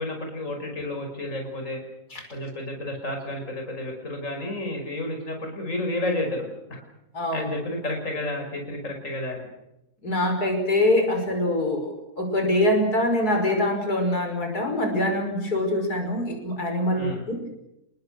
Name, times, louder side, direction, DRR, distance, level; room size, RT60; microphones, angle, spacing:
voice 1, 0.0-1.8 2.3-6.8 7.3-9.5 16.9-17.2, left 1 dB, 50° left, 2 dB, 5.7 m, -31 dB
voice 2, 7.1-7.5 10.0-11.9 12.2-17.5, left 1 dB, 75° left, 3 dB, 6.0 m, -24 dB
30.0 x 21.0 x 6.5 m, 0.88 s
omnidirectional pair, 1.7 m